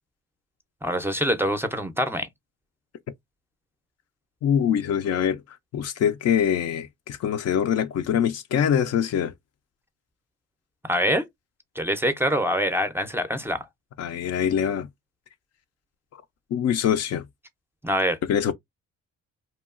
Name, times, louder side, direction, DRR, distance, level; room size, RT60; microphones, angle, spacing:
voice 1, 0.8-2.3 10.8-11.3 11.8-13.6 17.8-18.2, equal, 10° right, 0.4 m, -24 dB
voice 2, 4.4-9.3 14.0-14.9 16.5-17.3 18.2-18.5, left 8 dB, 60° left, 0.4 m, -24 dB
2.8 x 2.3 x 2.3 m
cardioid pair, 90°, 30 cm